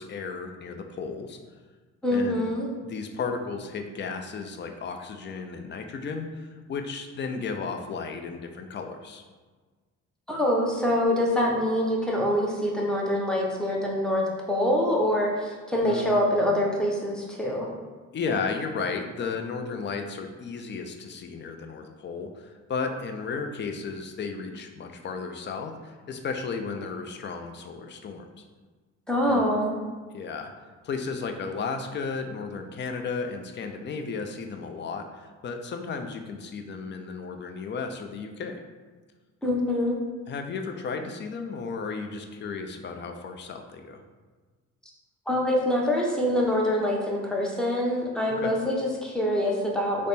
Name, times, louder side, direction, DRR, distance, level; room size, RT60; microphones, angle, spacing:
voice 1, 0.0-1.4 2.1-2.5 2.8-9.2 15.8-16.1 18.1-28.3 29.3-29.5 30.1-30.5 30.8-38.6 40.3-44.0 48.3-48.5, left 5 dB, 40° left, 5 dB, 0.4 m, -34 dB
voice 2, 2.0-2.7 10.3-17.7 29.1-29.7 39.4-40.0 45.3-50.1, left 1 dB, ahead, -2 dB, 0.7 m, -25 dB
3.3 x 2.0 x 4.1 m, 1.4 s
cardioid pair, 90°, 30 cm